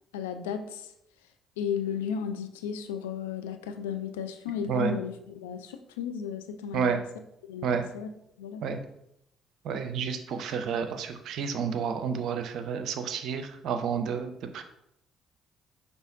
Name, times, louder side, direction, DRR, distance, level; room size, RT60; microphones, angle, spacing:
voice 1, 0.1-0.9 1.6-7.0 7.5-8.1 8.4-8.8, left 7 dB, 75° left, 8 dB, 0.3 m, -34 dB
voice 2, 9.6-14.6, right 6 dB, 60° right, 7 dB, 0.5 m, -30 dB
5.6 x 3.5 x 2.5 m, 0.79 s
figure-of-eight pair, 45°, 0 cm